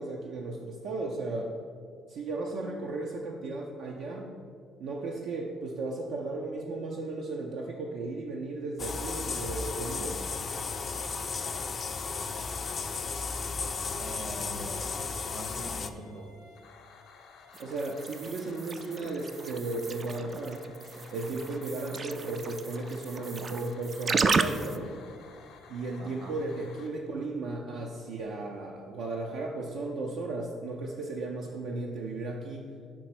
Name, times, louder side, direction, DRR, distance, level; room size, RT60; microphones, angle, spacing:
voice 1, 0.0-1.5 2.1-4.4 4.8-10.2 17.6-20.7 21.1-25.0 25.7-32.7, right 2 dB, 80° right, -1 dB, 0.6 m, -35 dB
sound 1, 8.8-15.9, left 4 dB, 40° left, 0.4 m, -34 dB
voice 2, 14.0-16.3 26.0-26.3, right 1 dB, 55° right, 4 dB, 1.1 m, -43 dB
sound 2, 14.9-26.9, left 5 dB, 85° left, 0.7 m, -54 dB
sound 3, 17.5-24.8, right 4 dB, 40° right, 0.3 m, -33 dB
5.4 x 4.5 x 5.9 m, 2.1 s
cardioid pair, 95°, 0 cm